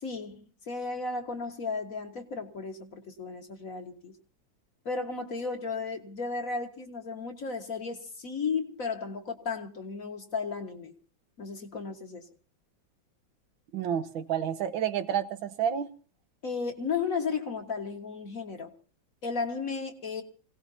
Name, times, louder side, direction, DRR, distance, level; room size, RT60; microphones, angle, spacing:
voice 1, 0.0-4.1 4.9-10.9 11.4-12.3 16.4-18.7 19.2-20.2, left 4 dB, 45° left, 4 dB, 1.9 m, -34 dB
voice 2, 13.7-15.9, right 9 dB, 90° right, 9 dB, 1.8 m, -30 dB
26.0 x 17.5 x 2.8 m, 0.38 s
omnidirectional pair, 2.1 m